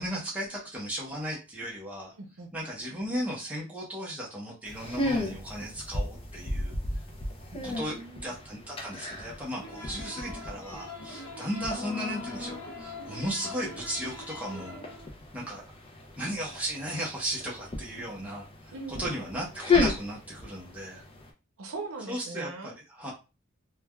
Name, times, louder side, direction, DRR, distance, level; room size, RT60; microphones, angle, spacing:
voice 1, 0.0-2.1 2.5-6.7 7.6-14.8 15.3-15.6 16.2-18.7 19.0-21.0 22.1-23.1, equal, 5° right, -4 dB, 0.7 m, -36 dB
voice 2, 2.2-2.5 7.5-8.3 18.7-19.2 21.6-22.7, right 3 dB, 70° right, 3 dB, 0.7 m, -40 dB
sound 1, 4.6-21.3, left 3 dB, 25° left, 0.5 m, -35 dB
sound 2, 9.6-15.1, left 2 dB, 85° left, 0.6 m, -43 dB
3.2 x 2.2 x 2.2 m, 0.29 s
head